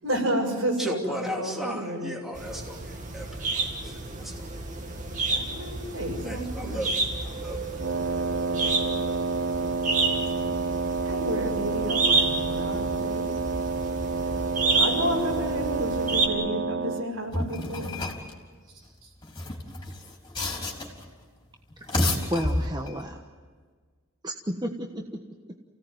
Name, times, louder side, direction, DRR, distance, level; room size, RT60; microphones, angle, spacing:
voice 1, 0.0-2.1 5.3-6.9 10.1-10.5 11.0-13.3 14.7-18.0 19.0-19.1, equal, 70° right, 1 dB, 6.9 m, -31 dB
voice 2, 0.8-4.5 6.2-6.9 7.2-7.7, equal, ahead, -1 dB, 2.9 m, -36 dB
sound 1, 2.3-16.3, right 3 dB, 35° right, 2.2 m, -30 dB
Wind instrument woodwind instrument, 7.8-17.1, right 4 dB, 55° right, 0.7 m, -29 dB
sound 2, 17.3-18.3 19.2-21.1 21.7-23.0, left 1 dB, 20° left, 3.9 m, -30 dB
voice 3, 22.3-23.2 24.2-25.2 25.5-25.6, equal, 20° right, 2 dB, 1.3 m, -32 dB
29.5 x 17.5 x 9.4 m, 1.6 s
head